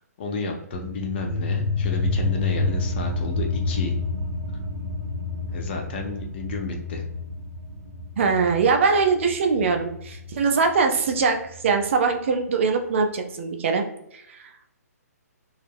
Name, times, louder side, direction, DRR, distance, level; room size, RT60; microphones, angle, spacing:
voice 1, 0.2-3.9 5.5-7.0, left 3 dB, 40° left, 2 dB, 0.5 m, -32 dB
sound 1, 0.7-11.8, left 3 dB, 90° right, 0.8 m, -29 dB
voice 2, 8.2-11.4 11.6-13.9 14.1-14.4, right 4 dB, 50° right, 4 dB, 0.4 m, -22 dB
2.3 x 2.0 x 3.2 m, 0.78 s
hypercardioid pair, 150°, 9 cm